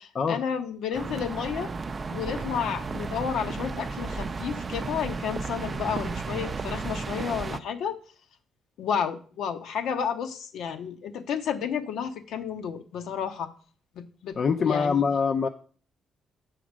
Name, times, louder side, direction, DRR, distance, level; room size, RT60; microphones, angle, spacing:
voice 1, 0.0-1.7 2.1-8.0 8.8-13.5 13.9-15.0, left 7 dB, 80° left, 6 dB, 1.0 m, -31 dB
sound 1, 0.9-7.6, right 4 dB, 35° right, 0.5 m, -33 dB
voice 2, 14.4-15.5, left 5 dB, 50° left, 7 dB, 0.5 m, -24 dB
7.2 x 5.0 x 6.1 m, 0.42 s
cardioid pair, 90°, 0 cm